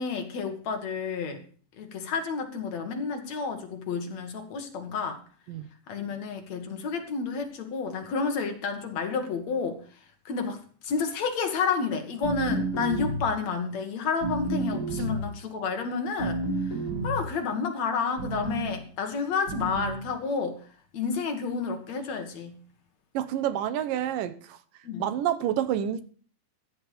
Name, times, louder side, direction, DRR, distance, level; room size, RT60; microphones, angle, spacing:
voice 1, 0.0-1.4 1.8-5.2 5.9-9.8 10.3-16.7 17.0-20.6 20.9-22.6 24.8-25.0, left 5 dB, 55° left, 5 dB, 2.6 m, -30 dB
sound 1, 12.2-13.4 14.2-15.3 16.2-17.3 18.2-18.7 19.5-20.1, right 2 dB, 20° left, 6.0 m, -30 dB
voice 2, 23.1-24.6 25.0-26.0, right 10 dB, 70° right, 12 dB, 2.4 m, -28 dB
15.0 x 10.0 x 5.1 m, 0.42 s
omnidirectional pair, 4.3 m